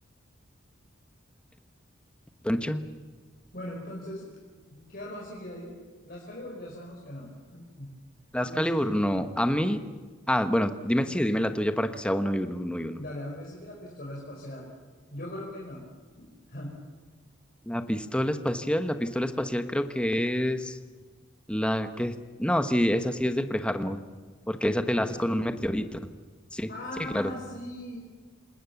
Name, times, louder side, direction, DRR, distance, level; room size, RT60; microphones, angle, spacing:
voice 1, 2.4-2.8 8.3-9.8 10.3-13.0 17.7-20.8 21.5-24.0 24.5-26.0 26.5-26.7 27.1-27.3, equal, 5° left, 8 dB, 1.1 m, -27 dB
voice 2, 3.5-4.3 4.7-5.7 6.0-8.0 8.4-8.9 11.0-11.1 13.0-14.7 15.1-15.8 16.2-16.8 25.1-25.3 26.7-28.0, left 1 dB, 50° left, -3 dB, 4.9 m, -40 dB
27.5 x 20.0 x 7.1 m, 1.5 s
head